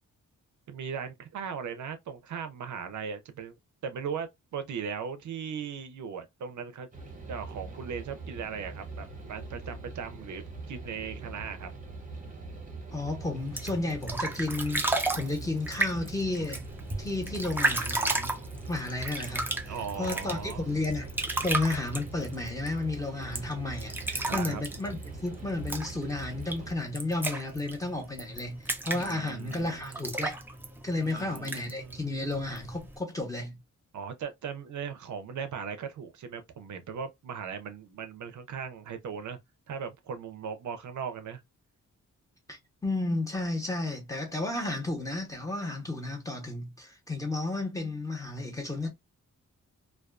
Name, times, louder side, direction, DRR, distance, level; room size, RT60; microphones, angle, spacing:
voice 1, 0.7-3.6 3.8-6.9 7.3-11.7 19.7-20.7 24.3-24.6 29.0-30.0 31.0-32.1 33.9-39.4 39.7-41.4, right 6 dB, 70° right, 0.5 m, -38 dB
sound 1, 6.9-26.8, right 3 dB, 25° right, 0.8 m, -43 dB
voice 2, 12.9-14.8 15.1-16.6 17.0-18.4 18.7-19.5 20.0-21.1 21.4-25.0 25.2-30.3 30.8-33.6 42.5-48.9, left 2 dB, 10° left, 0.9 m, -32 dB
sound 2, 13.4-33.0, right 2 dB, 5° right, 0.4 m, -34 dB
2.3 x 2.3 x 2.3 m
wide cardioid pair, 110°, 31 cm